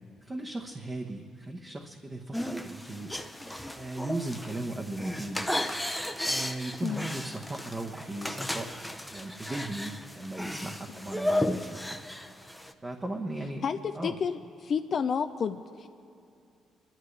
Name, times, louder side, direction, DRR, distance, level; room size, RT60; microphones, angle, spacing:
voice 1, 0.2-3.1 3.7-5.5 6.2-8.7 9.1-12.0 12.8-13.6 13.9-14.1, right 2 dB, 25° right, 1 dB, 1.0 m, -37 dB
sound 1, 2.3-12.7, left 1 dB, ahead, 0.7 m, -34 dB
voice 2, 14.0-15.9, left 6 dB, 55° left, 8 dB, 0.4 m, -30 dB
28.0 x 12.0 x 3.3 m, 2.5 s
cardioid pair, 90°, 0 cm